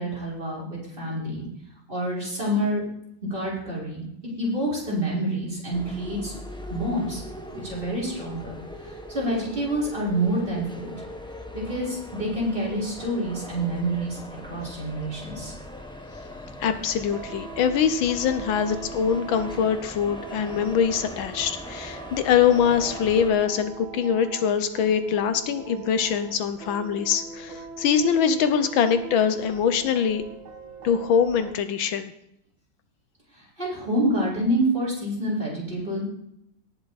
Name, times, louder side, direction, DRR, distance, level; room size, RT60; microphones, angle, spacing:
voice 1, 0.0-1.5 1.9-2.8 3.3-6.3 6.7-7.2 7.5-8.6 9.1-10.9 11.5-14.2 14.4-15.5 33.4-36.0, right 1 dB, 25° right, -5 dB, 4.9 m, -27 dB
sound 1, 5.7-23.3, left 1 dB, 5° left, 0.5 m, -40 dB
sound 2, 16.4-31.5, right 5 dB, 75° right, 2.0 m, -42 dB
voice 2, 16.6-30.2 30.8-32.1, left 7 dB, 75° left, 10 dB, 1.5 m, -23 dB
18.5 x 7.2 x 4.1 m, 0.77 s
omnidirectional pair, 2.3 m